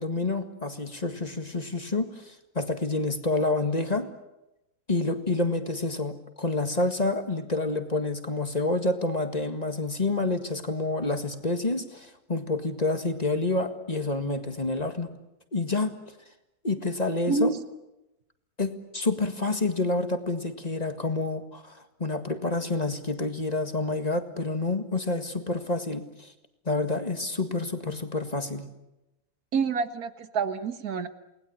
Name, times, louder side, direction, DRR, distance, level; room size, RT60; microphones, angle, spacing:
voice 1, 0.0-4.1 4.9-15.1 15.5-16.0 16.6-17.5 18.6-26.3 26.7-28.7, left 2 dB, 25° left, 7 dB, 1.9 m, -28 dB
voice 2, 29.5-31.1, right 5 dB, 85° right, 10 dB, 1.9 m, -27 dB
29.0 x 20.0 x 8.8 m, 0.94 s
omnidirectional pair, 1.6 m